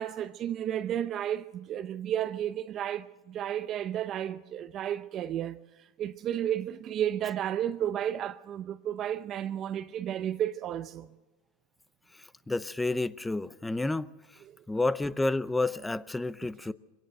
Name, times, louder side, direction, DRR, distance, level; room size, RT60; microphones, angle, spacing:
voice 1, 0.0-11.1 14.4-14.6, right 10 dB, 40° right, 0.6 m, -32 dB
voice 2, 12.5-14.1 14.7-16.7, left 2 dB, 10° left, 0.7 m, -30 dB
23.5 x 18.0 x 6.6 m
supercardioid pair, 120°, 0 cm